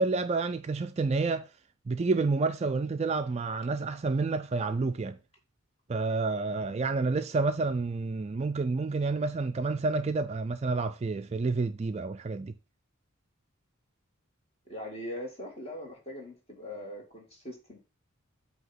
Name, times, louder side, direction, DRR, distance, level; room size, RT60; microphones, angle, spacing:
voice 1, 0.0-1.5 1.9-5.2 5.9-12.5, right 3 dB, 30° right, 0.3 m, -29 dB
voice 2, 14.7-17.8, left 1 dB, 30° left, 2.0 m, -41 dB
8.0 x 2.9 x 5.7 m
head